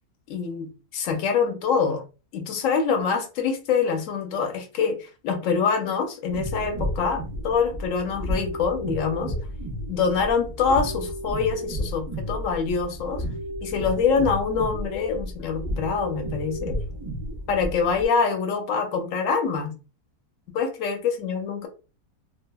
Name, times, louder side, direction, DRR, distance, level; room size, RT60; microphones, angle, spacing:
voice 1, 0.3-2.0 2.3-9.3 9.9-13.2 13.6-16.7 17.5-19.7 20.5-21.7, left 5 dB, 65° left, 0.9 m, -25 dB
sound 1, 6.3-18.1, equal, 50° right, 0.4 m, -32 dB
2.7 x 2.4 x 2.2 m
omnidirectional pair, 1.7 m